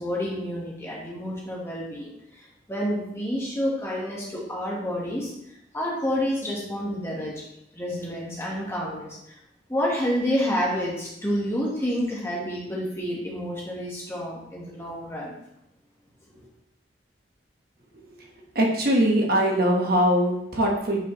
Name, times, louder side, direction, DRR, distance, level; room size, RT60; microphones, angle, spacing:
voice 1, 0.0-5.3 5.7-7.5 7.7-9.4 9.7-15.3 16.3-16.4, equal, 15° left, -3 dB, 1.5 m, -29 dB
voice 2, 18.5-21.0, equal, 55° right, 0 dB, 1.3 m, -21 dB
9.1 x 4.9 x 3.2 m, 0.80 s
head